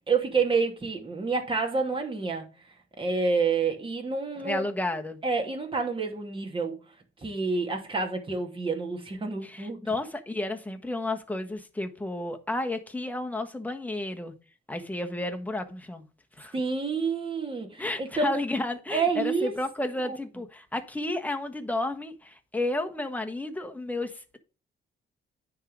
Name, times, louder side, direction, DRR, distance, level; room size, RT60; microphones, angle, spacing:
voice 1, 0.1-2.5 3.0-4.7 5.2-6.8 7.2-9.8 16.5-18.4 18.9-19.5 20.0-20.2, right 4 dB, 25° right, 2.5 m, -28 dB
voice 2, 4.4-5.2 9.4-14.3 14.7-16.0 16.4-16.5 17.8-24.4, left 2 dB, 10° left, 1.4 m, -32 dB
9.7 x 3.8 x 6.2 m
cardioid pair, 90°, 20 cm